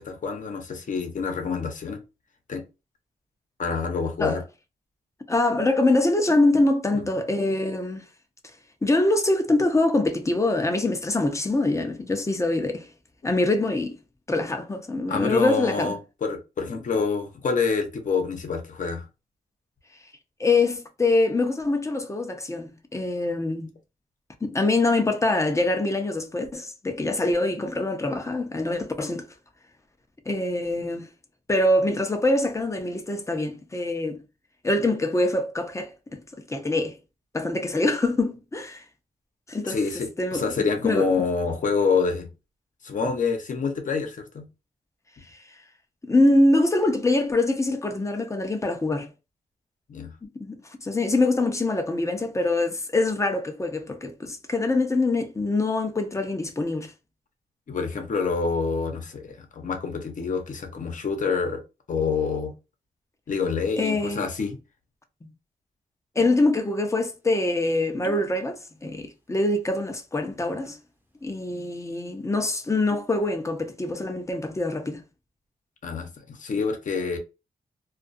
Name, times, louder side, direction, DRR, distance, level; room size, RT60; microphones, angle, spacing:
voice 1, 0.0-2.0 2.5-2.6 3.6-4.4 6.9-7.0 15.1-19.0 39.6-42.3 42.8-44.5 49.9-50.1 57.7-61.6 61.9-62.5 63.3-64.6 75.8-77.2, left 5 dB, 55° left, 0.9 m, -27 dB
voice 2, 5.3-8.0 8.8-12.9 13.2-14.0 14.3-16.0 20.4-23.7 24.4-29.3 30.3-31.1 31.5-34.2 34.6-37.0 37.3-38.8 39.5-39.8 40.2-40.6 40.8-41.1 46.0-49.1 50.2-56.9 63.8-64.2 66.2-70.8 71.2-75.0, left 2 dB, 20° left, 0.6 m, -24 dB
sound 1, 67.0-67.1 67.8-68.4 68.6-69.3 69.6-69.8 70.5-70.9 71.4-71.5 71.8-72.0 72.6-73.2 73.6-74.0, equal, 15° right, 0.7 m, -45 dB
2.4 x 2.3 x 2.5 m
cardioid pair, 90°, 15 cm